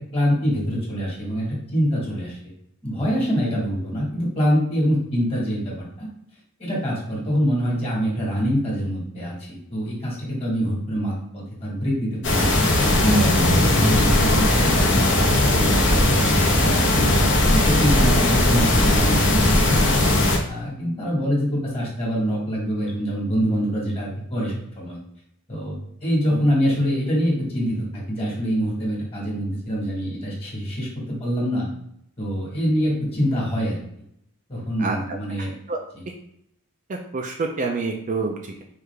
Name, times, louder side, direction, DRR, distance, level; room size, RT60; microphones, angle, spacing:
voice 1, 0.1-2.4 2.8-6.1 6.6-12.5 13.0-16.2 16.5-17.2 17.5-19.9 20.5-25.0 25.5-31.7 32.2-33.8 34.5-35.5, equal, 25° left, -5 dB, 1.5 m, -25 dB
sound 1, 12.2-20.4, left 1 dB, 55° left, 0.9 m, -18 dB
voice 2, 34.8-35.8 36.9-38.6, right 3 dB, 35° right, 2 dB, 0.4 m, -28 dB
4.6 x 2.5 x 3.3 m, 0.72 s
head